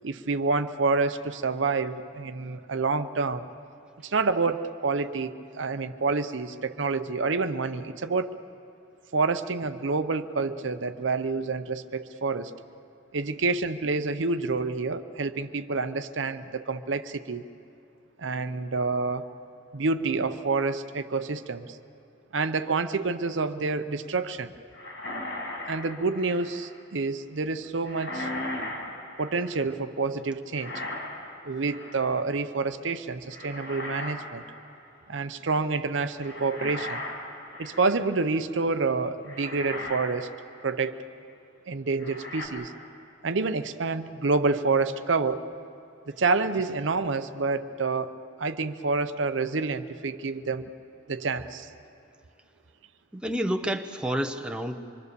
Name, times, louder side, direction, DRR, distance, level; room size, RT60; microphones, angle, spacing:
voice 1, 0.0-3.5 4.0-8.3 9.1-12.5 13.1-17.4 18.2-19.3 19.7-21.8 22.3-24.5 25.7-28.3 29.2-30.8 31.4-34.4 35.1-37.0 37.6-40.3 40.6-41.0 41.7-42.7 43.2-45.4 46.1-50.7 51.1-51.7, right 4 dB, 75° right, 10 dB, 0.7 m, -28 dB
sound 1, 24.7-26.7 27.9-29.6 30.5-31.3 31.7-32.2 33.3-34.2 34.5-34.8 36.2-38.0 38.8-38.9 39.3-40.2 40.6-40.7 42.0-42.5, left 1 dB, 75° left, 4.4 m, -37 dB
voice 2, 53.1-54.8, equal, 5° right, 5 dB, 0.8 m, -29 dB
25.5 x 23.0 x 6.9 m, 2.6 s
head